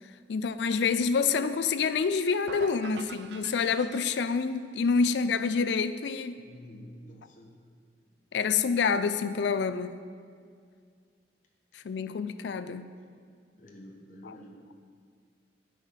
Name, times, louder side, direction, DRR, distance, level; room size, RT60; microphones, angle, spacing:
voice 1, 0.3-6.3 8.3-9.9 11.7-12.9 14.2-14.3, left 5 dB, 75° left, 12 dB, 0.4 m, -27 dB
sound 1, 2.5-4.6, right 6 dB, 70° right, 0.3 m, -45 dB
voice 2, 6.4-7.5 13.6-14.5, equal, 45° left, 0 dB, 1.0 m, -49 dB
8.9 x 5.0 x 5.7 m, 2.1 s
head